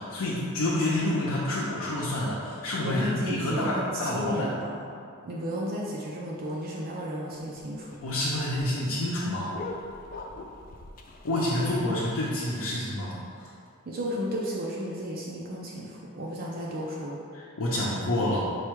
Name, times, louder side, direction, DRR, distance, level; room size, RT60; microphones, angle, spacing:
voice 1, 0.0-4.5 8.0-9.5 11.2-13.5 17.3-18.4, left 1 dB, 85° left, -8 dB, 0.6 m, -28 dB
voice 2, 2.8-4.7 5.2-8.0 11.6-12.0 13.9-17.2, equal, 45° right, -3 dB, 0.4 m, -33 dB
sound 1, 7.3-13.0, left 2 dB, 40° left, 0.3 m, -44 dB
4.7 x 2.2 x 4.6 m, 2.4 s
head